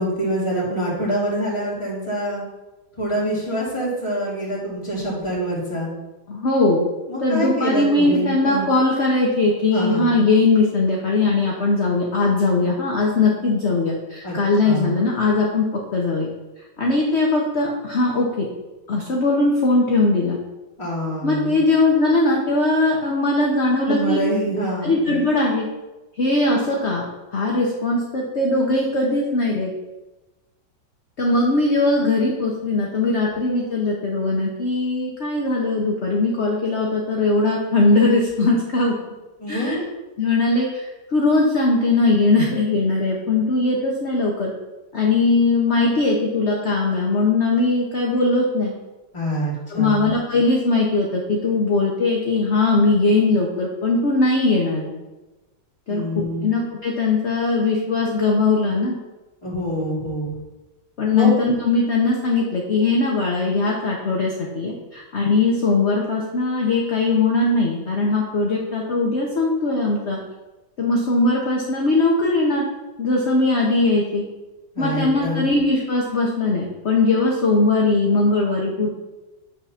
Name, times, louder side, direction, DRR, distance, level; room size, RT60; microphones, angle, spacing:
voice 1, 0.0-2.4 3.0-5.9 7.1-8.6 9.7-10.1 14.2-14.3 14.6-15.0 20.8-21.6 23.8-24.9 39.4-39.9 49.1-50.1 55.9-56.5 59.4-60.3 61.1-61.3 74.8-75.4, right 1 dB, 15° left, -6 dB, 2.4 m, -25 dB
voice 2, 6.3-6.8 7.2-16.3 16.8-18.5 18.9-20.4 21.2-24.2 24.8-25.6 26.2-29.7 31.2-38.9 39.5-39.8 40.2-44.5 44.9-48.7 49.7-54.9 55.9-58.9 61.0-70.2 70.8-72.7 73.0-74.2 74.8-78.9, left 3 dB, 45° left, -2 dB, 1.0 m, -20 dB
8.3 x 3.7 x 5.7 m, 1.1 s
omnidirectional pair, 2.0 m